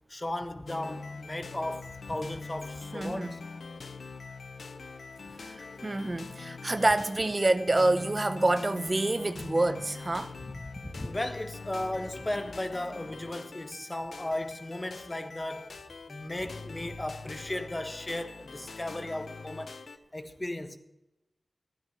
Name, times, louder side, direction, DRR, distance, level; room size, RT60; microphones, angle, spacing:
voice 1, 0.1-3.4 5.2-5.3 10.2-15.8 16.1-19.7 20.1-20.8, left 1 dB, 25° left, 1.3 m, -36 dB
sound 1, 0.7-20.0, left 4 dB, 75° left, 0.6 m, -43 dB
voice 2, 2.9-3.3 5.4-10.3, right 2 dB, 40° right, 0.7 m, -27 dB
12.0 x 9.6 x 6.5 m
cardioid pair, 40°, 0 cm